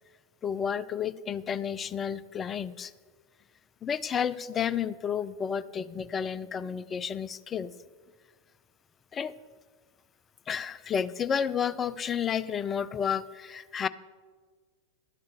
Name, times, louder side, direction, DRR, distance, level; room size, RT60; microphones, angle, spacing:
voice 1, 0.4-2.9 3.8-7.7 9.1-9.3 10.5-13.9, left 7 dB, 20° left, 16 dB, 0.4 m, -31 dB
12.5 x 7.7 x 6.7 m, 1.5 s
figure-of-eight pair, 90°, 0 cm